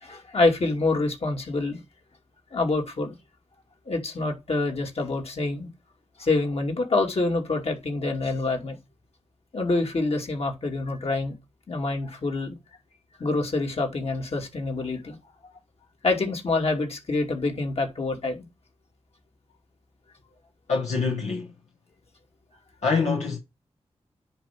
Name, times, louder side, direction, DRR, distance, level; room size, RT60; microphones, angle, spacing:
voice 1, 0.0-1.8 2.5-3.1 3.9-5.7 6.2-8.8 9.5-11.3 11.7-12.5 13.2-15.2 16.0-18.5, left 3 dB, 65° left, 2.7 m, -26 dB
voice 2, 20.7-21.5 22.8-23.4, left 4 dB, 90° left, 1.3 m, -25 dB
10.0 x 3.5 x 6.0 m
cardioid pair, 50°, 11 cm